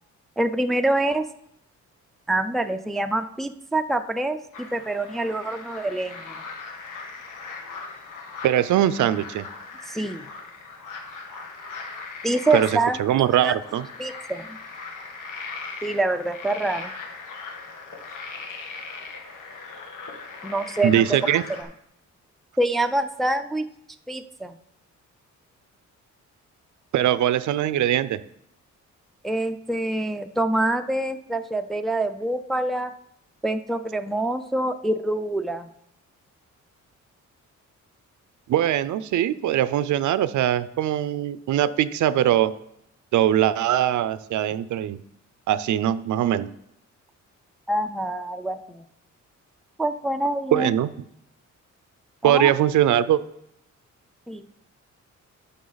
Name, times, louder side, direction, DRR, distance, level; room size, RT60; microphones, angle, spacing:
voice 1, 0.4-1.3 2.3-6.4 9.9-10.2 12.2-13.0 13.4-13.6 14.0-14.6 15.8-16.9 20.4-21.0 21.6-21.7 22.6-23.6 24.1-24.6 29.2-32.9 33.4-35.7 47.7-48.9 49.8-50.7 52.2-52.5 54.3-54.5, right 1 dB, ahead, 7 dB, 0.4 m, -25 dB
sound 1, 4.5-21.6, left 4 dB, 90° left, 1.6 m, -39 dB
voice 2, 8.4-9.5 12.5-12.7 13.0-13.8 20.8-21.4 26.9-28.2 38.5-42.5 43.1-45.0 45.5-46.5 50.5-50.9 52.2-53.2, right 11 dB, 75° right, 15 dB, 0.5 m, -21 dB
11.0 x 6.3 x 4.0 m, 0.76 s
cardioid pair, 140°, 30 cm